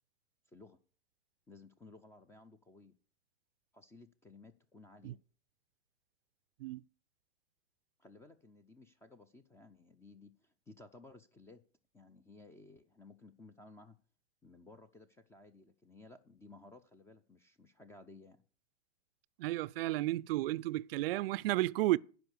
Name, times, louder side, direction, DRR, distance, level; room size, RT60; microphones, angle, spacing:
voice 1, 0.5-0.8 1.5-3.0 3.7-5.2 8.0-11.6 11.9-14.0 14.4-18.4, left 3 dB, 10° left, 0.4 m, -57 dB
voice 2, 19.4-22.0, right 17 dB, 55° right, 0.4 m, -32 dB
10.5 x 5.3 x 8.2 m
hypercardioid pair, 120°, 36 cm